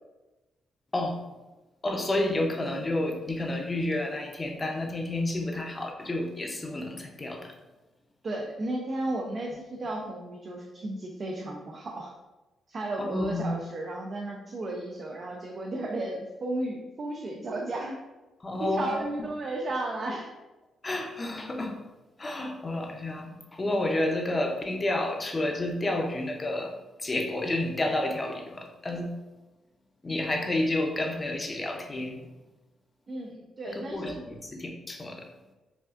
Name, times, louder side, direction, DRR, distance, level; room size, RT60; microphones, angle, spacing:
voice 1, 1.8-7.6 13.0-13.5 18.4-19.3 20.8-21.8 22.2-29.1 30.0-32.3 33.6-35.3, left 1 dB, 25° left, 2 dB, 0.6 m, -30 dB
voice 2, 8.2-12.1 12.7-18.0 18.6-20.3 33.1-34.2, right 2 dB, 45° right, 0 dB, 0.5 m, -34 dB
4.9 x 2.4 x 2.5 m, 1.1 s
cardioid pair, 85°, 0 cm